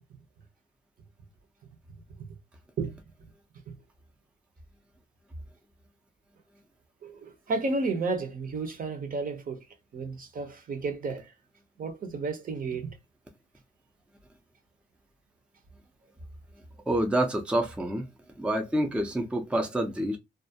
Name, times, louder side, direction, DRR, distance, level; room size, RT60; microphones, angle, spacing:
voice 1, 7.0-9.6 9.9-11.3 11.8-13.0, right 3 dB, 45° right, 0.7 m, -32 dB
voice 2, 16.9-18.1 18.4-20.2, right 1 dB, 5° right, 0.5 m, -27 dB
2.3 x 2.0 x 2.6 m
cardioid pair, 90°, 20 cm